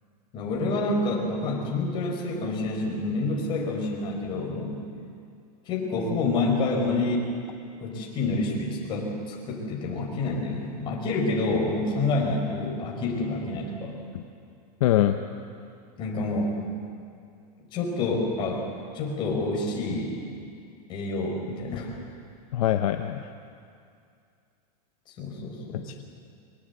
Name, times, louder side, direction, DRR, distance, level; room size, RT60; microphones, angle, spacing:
voice 1, 0.3-4.8 5.6-7.3 7.8-13.9 16.0-16.6 17.7-18.7 18.9-20.2 20.9-21.9 25.2-25.8, left 2 dB, 20° left, -1 dB, 4.3 m, -28 dB
voice 2, 14.8-15.2 22.5-23.3 25.8-26.0, left 12 dB, 55° left, 6 dB, 0.9 m, -23 dB
24.0 x 19.0 x 8.2 m, 2.3 s
supercardioid pair, 180°, 21 cm